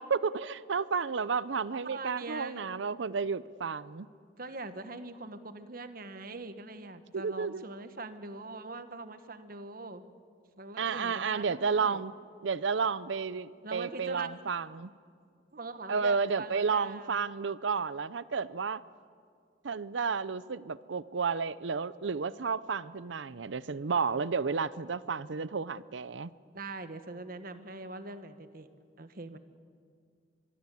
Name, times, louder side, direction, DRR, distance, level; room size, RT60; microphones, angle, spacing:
voice 1, 0.0-4.1 7.1-7.6 10.8-12.1 12.4-14.9 15.9-18.8 19.6-26.3, right 5 dB, 80° right, 18 dB, 0.6 m, -32 dB
voice 2, 1.7-2.7 4.4-10.0 10.6-12.1 13.6-14.5 15.5-17.2 26.5-28.7 29.0-29.4, right 3 dB, 50° right, 10 dB, 1.3 m, -42 dB
24.5 x 22.5 x 8.4 m, 2.2 s
head